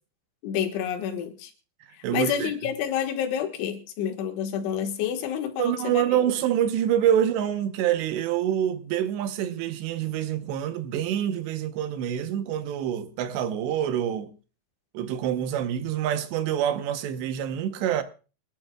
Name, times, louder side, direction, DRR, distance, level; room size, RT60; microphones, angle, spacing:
voice 1, 0.4-1.5 1.9-6.3, left 9 dB, 85° left, 3.9 m, -29 dB
voice 2, 2.0-2.5 5.6-14.3 14.9-18.0, right 10 dB, 75° right, 3.0 m, -26 dB
26.5 x 11.5 x 2.3 m
omnidirectional pair, 5.2 m